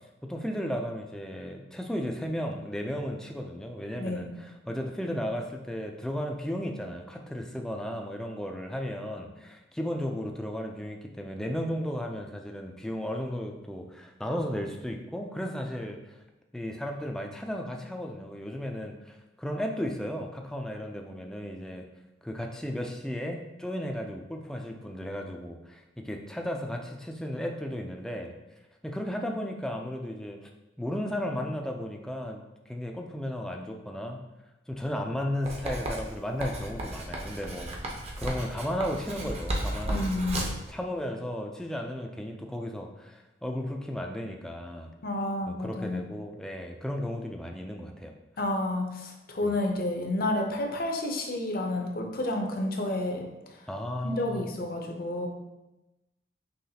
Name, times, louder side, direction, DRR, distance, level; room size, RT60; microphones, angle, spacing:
voice 1, 0.2-16.0 16.5-21.8 22.2-28.3 28.8-30.4 30.8-34.2 34.7-40.3 40.7-44.9 45.5-48.1 49.4-49.5 53.7-54.5, equal, 5° left, 2 dB, 0.3 m, -34 dB
voice 2, 3.9-4.3 39.9-40.5 45.0-46.1 48.4-53.3 54.0-55.3, left 1 dB, 50° left, 2 dB, 0.6 m, -30 dB
Writing, 35.5-40.7, right 1 dB, 35° right, 0.7 m, -34 dB
5.6 x 3.0 x 2.8 m, 1.0 s
head